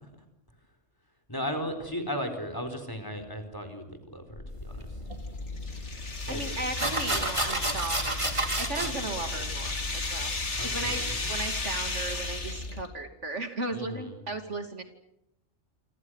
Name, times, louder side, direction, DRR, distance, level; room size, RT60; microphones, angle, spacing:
voice 1, 1.3-4.9 6.3-6.4 10.6-11.3 13.7-14.2, equal, 15° left, 8 dB, 4.4 m, -36 dB
sound 1, 4.3-12.8, left 2 dB, 40° left, 2.8 m, -38 dB
sound 2, 5.1-12.9, left 3 dB, 65° left, 3.2 m, -35 dB
sound 3, 5.1-5.2 6.3-6.4 6.8-8.9, right 2 dB, 25° right, 3.0 m, -29 dB
voice 2, 6.3-8.0 8.6-10.3 10.6-11.0 11.3-14.8, right 2 dB, 70° right, 7 dB, 3.0 m, -36 dB
28.5 x 26.5 x 6.5 m, 0.81 s
omnidirectional pair, 1.3 m